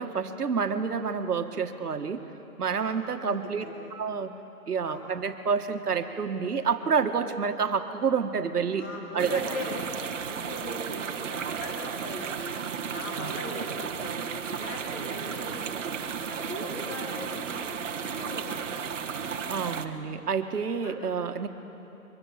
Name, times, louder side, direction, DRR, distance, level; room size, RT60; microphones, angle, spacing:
voice 1, 0.0-2.2 2.6-3.6 3.9-4.3 4.7-8.9 9.1-9.4 13.1-13.4 19.5-21.5, right 6 dB, 80° right, 7 dB, 1.7 m, -28 dB
voice 2, 2.8-3.3 3.6-3.7 4.9-5.1 8.8-9.9 10.2-12.6 12.9-15.6 16.3-18.8 19.9-20.0 20.8-21.0, left 2 dB, 10° left, 1 dB, 1.0 m, -40 dB
sound 1, 9.2-19.9, right 7 dB, 50° right, 1.2 m, -34 dB
24.0 x 20.5 x 7.2 m, 2.9 s
hypercardioid pair, 165°, 46 cm